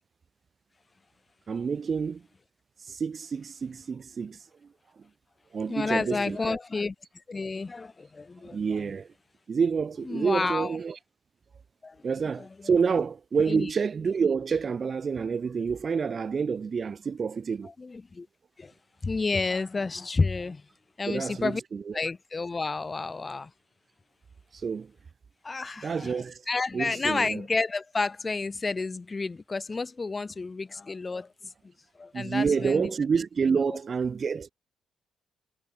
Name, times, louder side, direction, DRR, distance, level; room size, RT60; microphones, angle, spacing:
voice 1, 1.5-2.2 2.8-4.5 5.5-6.6 8.5-9.1 9.5-11.0 12.0-17.7 21.1-22.1 24.5-24.9 25.8-27.4 32.1-34.5, right 6 dB, 40° right, 4.0 m, -28 dB
voice 2, 5.7-6.9 7.3-8.6 10.1-10.7 11.8-12.0 13.5-13.7 17.8-18.3 18.6-18.7 19.0-20.6 21.0-21.6 21.9-23.5 25.4-26.2 26.5-31.3 32.0-32.9 33.5-33.8, left 3 dB, 25° left, 2.3 m, -30 dB
cardioid pair, 90°, 0 cm